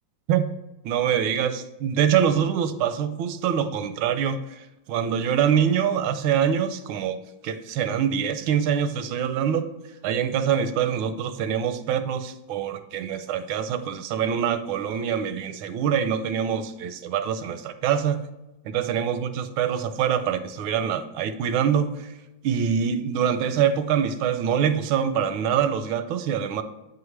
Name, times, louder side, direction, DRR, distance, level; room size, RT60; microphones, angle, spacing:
voice 1, 0.8-7.2 7.4-9.7 10.0-18.2 18.6-22.1 22.4-26.6, right 8 dB, 90° right, 10 dB, 1.5 m, -24 dB
8.0 x 4.9 x 3.2 m, 0.99 s
omnidirectional pair, 2.2 m